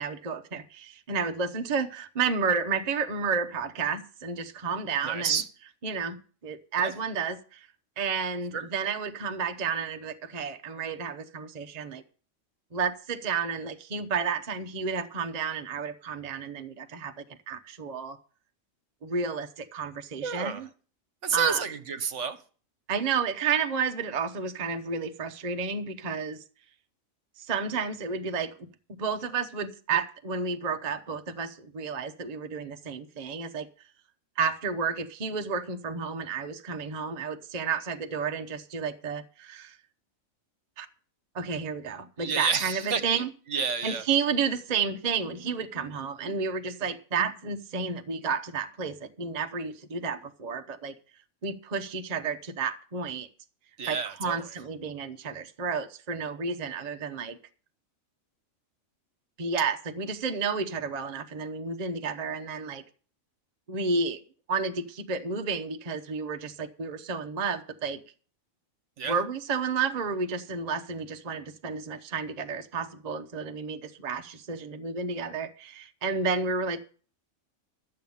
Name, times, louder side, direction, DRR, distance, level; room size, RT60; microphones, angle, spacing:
voice 1, 0.0-5.4 5.8-6.2 6.4-7.7 8.0-12.0 12.7-18.2 19.0-20.7 21.3-21.6 22.9-26.4 27.4-28.6 29.0-33.7 34.4-39.8 40.8-40.9 41.3-43.3 43.8-50.9 51.4-53.3 53.9-57.4 59.4-62.8 63.7-64.2 64.5-68.0 69.1-76.8, right 5 dB, 35° right, 0.8 m, -31 dB
voice 2, 5.0-5.4 6.8-6.9 8.5-8.6 20.2-20.7 21.2-22.4 42.2-43.2 43.5-44.0 53.8-54.5 69.0-69.2, right 6 dB, 65° right, 1.3 m, -30 dB
12.5 x 7.7 x 7.1 m
omnidirectional pair, 1.4 m